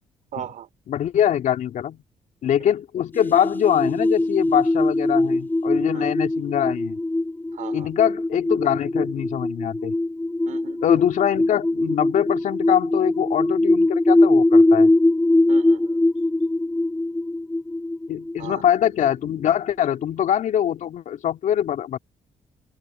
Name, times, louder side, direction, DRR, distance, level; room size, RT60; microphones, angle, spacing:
voice 1, 0.3-0.7 5.9-6.1 7.5-7.9 10.5-10.8 15.5-16.0 18.4-18.7, right 11 dB, 65° right, 3.7 m, -37 dB
voice 2, 0.9-2.0 2.4-7.0 7.7-9.9 10.8-14.9 18.1-22.0, left 10 dB, 65° left, 2.8 m, -23 dB
sound 1, 3.1-19.4, left 2 dB, 15° left, 3.9 m, -21 dB
open air
supercardioid pair, 55°, 14 cm